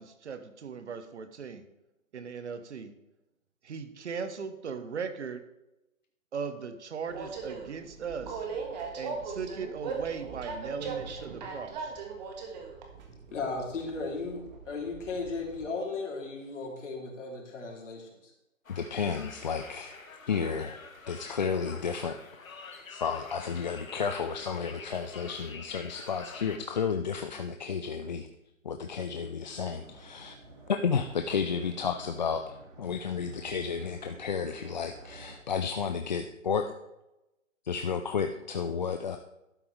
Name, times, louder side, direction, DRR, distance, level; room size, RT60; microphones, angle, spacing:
voice 1, 0.0-1.6 2.1-2.9 3.6-5.4 6.3-8.4 9.0-11.9, right 6 dB, 55° right, 10 dB, 1.2 m, -38 dB
Train, 7.1-15.7, right 5 dB, 30° right, 1.6 m, -39 dB
voice 2, 13.3-18.3, left 3 dB, 60° left, -1 dB, 3.2 m, -36 dB
Conversation, 18.6-26.6, left 4 dB, 75° left, 1.5 m, -47 dB
voice 3, 18.7-19.9 20.3-20.8 21.1-22.2 22.9-28.3 28.6-30.3 30.7-32.4 32.8-36.7 37.7-39.2, left 6 dB, 35° left, 6 dB, 0.5 m, -32 dB
sound 1, 29.5-35.4, right 2 dB, 75° right, 3.8 m, -51 dB
12.0 x 8.6 x 3.3 m, 0.91 s
figure-of-eight pair, 140°, 41 cm